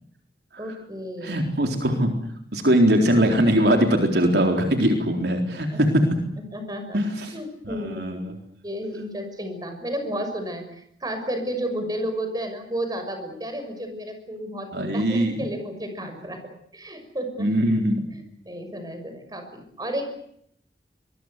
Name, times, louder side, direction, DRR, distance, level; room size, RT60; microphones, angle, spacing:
voice 1, 0.6-1.4 5.7-5.8 6.5-7.0 7.3-8.1 8.6-16.4 16.7-17.7 18.1-20.1, equal, 20° right, 6 dB, 6.3 m, -32 dB
voice 2, 1.2-2.1 2.5-6.1 6.9-7.3 7.6-8.3 14.7-15.4 17.4-18.0, equal, 65° right, 4 dB, 4.0 m, -21 dB
24.5 x 23.0 x 8.1 m, 0.71 s
head